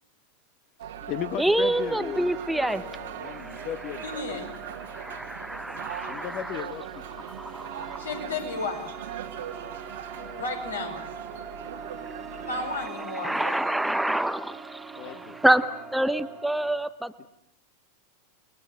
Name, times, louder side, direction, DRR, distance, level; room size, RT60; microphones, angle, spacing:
voice 1, 0.8-4.4 6.1-7.0 10.1-10.4 12.4-12.6 14.9-15.4 17.2-17.3, left 11 dB, 40° left, 10 dB, 1.3 m, -37 dB
sound 1, 0.8-12.9, right 9 dB, 60° right, 1.9 m, -40 dB
voice 2, 1.4-2.8 3.2-3.7 4.8-6.6 7.4-8.0 13.2-17.3, right 1 dB, ahead, 11 dB, 0.9 m, -27 dB
sound 2, 1.6-16.7, right 6 dB, 25° right, 2.1 m, -43 dB
voice 3, 4.0-4.5 8.0-8.9 10.3-11.0 12.5-13.6 15.0-15.3, left 3 dB, 75° left, 2 dB, 5.8 m, -33 dB
30.0 x 21.0 x 7.7 m, 0.77 s
figure-of-eight pair, 90°, 0 cm